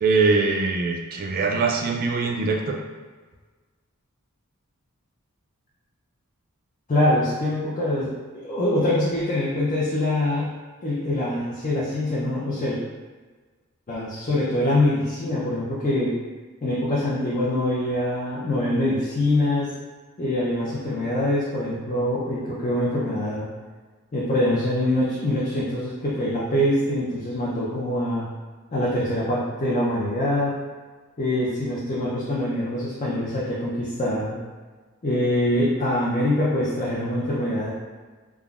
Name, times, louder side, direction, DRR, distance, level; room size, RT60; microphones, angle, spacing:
voice 1, 0.0-2.8, right 4 dB, 40° right, 2 dB, 0.3 m, -22 dB
voice 2, 6.9-10.5 10.8-12.8 13.9-16.1 16.6-19.7 20.2-23.5 24.1-28.3 28.7-30.5 31.2-34.4 35.0-37.7, left 1 dB, 35° left, -8 dB, 0.5 m, -24 dB
3.5 x 2.1 x 2.3 m, 1.4 s
head